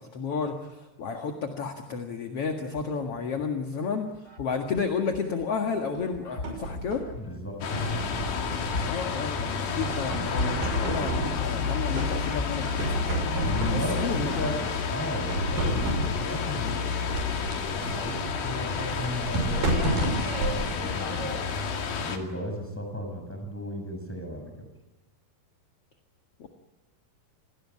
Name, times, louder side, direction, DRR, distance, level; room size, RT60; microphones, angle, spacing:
voice 1, 0.0-7.0 8.8-12.9 13.7-14.6, left 5 dB, 50° left, 4 dB, 2.4 m, -31 dB
sound 1, 2.6-3.4 3.9-5.5 5.9-15.6 15.9-18.5, left 3 dB, 25° left, 2.8 m, -39 dB
sound 2, 6.0-7.2 7.7-9.1 9.5-11.6 11.9-12.5 12.8-14.7 15.3-16.4 17.1-21.6, right 1 dB, 75° right, 7.9 m, -31 dB
voice 2, 7.1-7.9 13.4-16.8 17.5-21.4 22.0-24.7, equal, 5° left, 4 dB, 6.6 m, -35 dB
sound 3, 7.6-22.2, left 6 dB, 85° left, 4.2 m, -31 dB
28.5 x 19.5 x 9.8 m, 1.1 s
omnidirectional pair, 4.1 m